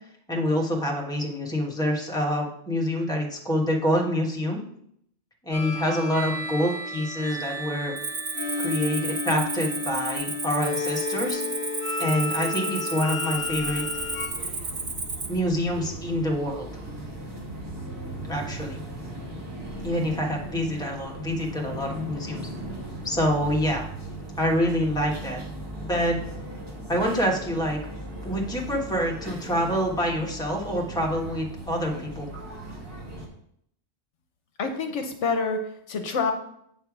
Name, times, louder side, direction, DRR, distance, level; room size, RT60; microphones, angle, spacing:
voice 1, 0.3-4.6 5.4-7.9 8.6-11.4 12.0-13.8 15.3-16.7 18.3-18.8 19.8-22.5 23.0-23.8 24.4-25.4 25.8-26.2 26.9-27.8 28.2-32.3, equal, 5° left, -1 dB, 1.2 m, -26 dB
sound 1, 5.5-14.3, left 3 dB, 45° left, 1.5 m, -32 dB
Cricket, 8.0-15.4, right 4 dB, 40° right, 0.6 m, -33 dB
sound 2, 13.3-33.3, right 1 dB, 20° right, 1.7 m, -38 dB
voice 2, 34.6-36.3, left 4 dB, 70° left, 6 dB, 1.0 m, -27 dB
8.0 x 3.4 x 5.9 m, 0.70 s
omnidirectional pair, 1.3 m